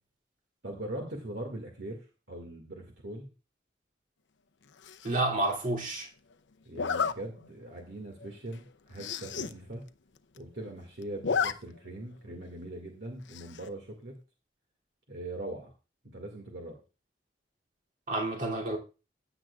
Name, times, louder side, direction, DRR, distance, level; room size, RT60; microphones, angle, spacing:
voice 1, 0.6-3.3 6.6-9.8 10.3-14.2 15.1-15.7 16.0-16.8, right 1 dB, 65° right, 2.1 m, -41 dB
Zipper (clothing), 4.8-5.2 6.7-7.1 7.7-7.9 8.2-8.3 8.5-8.6 8.9-9.5 9.9-10.0 10.2-10.7 11.0-11.5 11.9-12.0 13.3-13.7, left 6 dB, 80° left, 0.6 m, -32 dB
voice 2, 5.0-6.1 18.1-18.8, right 2 dB, 50° right, 2.8 m, -29 dB
15.5 x 9.0 x 2.4 m
head